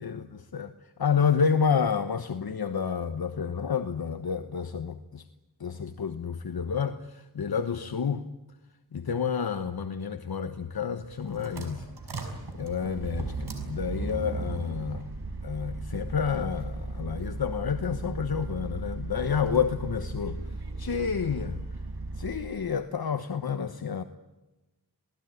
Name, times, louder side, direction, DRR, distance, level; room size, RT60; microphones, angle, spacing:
voice 1, 0.0-5.2 5.6-8.3 8.9-12.3 12.5-15.1 15.4-20.4 20.8-21.6 22.1-24.0, left 6 dB, 70° left, 9 dB, 1.2 m, -29 dB
sound 1, 11.0-22.5, right 3 dB, 80° right, 5.9 m, -36 dB
27.5 x 19.0 x 9.4 m, 1.1 s
wide cardioid pair, 60°, 38 cm